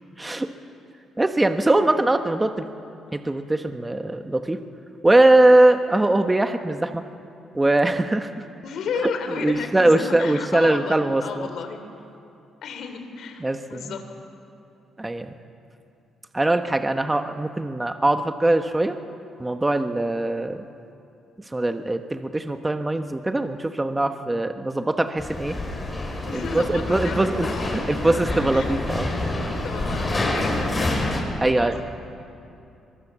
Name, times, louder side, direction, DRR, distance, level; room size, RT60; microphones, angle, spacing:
voice 1, 0.2-0.5 1.2-2.7 3.1-4.6 5.0-7.0 7.5-8.4 9.0-11.5 13.4-13.9 15.0-15.3 16.3-19.0 19.4-20.6 21.5-25.5 26.5-29.1 31.4-31.8, right 2 dB, 15° right, 7 dB, 1.1 m, -21 dB
voice 2, 8.6-11.8 12.6-14.1 26.3-28.3 28.5-28.7 29.6-31.1 31.4-31.9, left 6 dB, 70° left, 6 dB, 3.4 m, -33 dB
sound 1, 25.2-31.2, left 1 dB, 25° left, 5.7 m, -27 dB
23.0 x 23.0 x 7.5 m, 2.7 s
cardioid pair, 90°, 0 cm